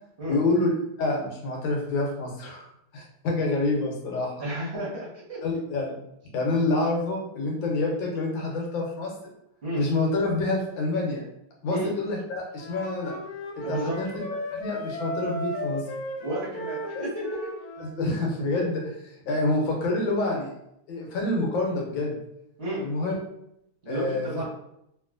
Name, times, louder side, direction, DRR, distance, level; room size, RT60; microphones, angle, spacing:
voice 1, 0.3-0.7 1.0-2.7 2.9-4.5 5.4-5.9 6.3-9.1 9.7-11.2 11.6-13.2 13.7-14.1 14.5-15.8 16.9-17.0 17.8-20.5 20.9-22.2 22.8-23.1 23.9-24.5, left 2 dB, 70° left, -1 dB, 1.5 m, -27 dB
voice 2, 4.4-5.4 9.6-9.8 11.6-11.9 13.6-14.0 16.2-17.3 22.6-22.9 23.8-24.5, right 1 dB, 40° right, -7 dB, 1.0 m, -32 dB
Wind instrument woodwind instrument, 12.6-17.9, equal, 85° left, 0.8 m, -35 dB
3.0 x 2.9 x 2.5 m, 0.77 s
omnidirectional pair, 2.3 m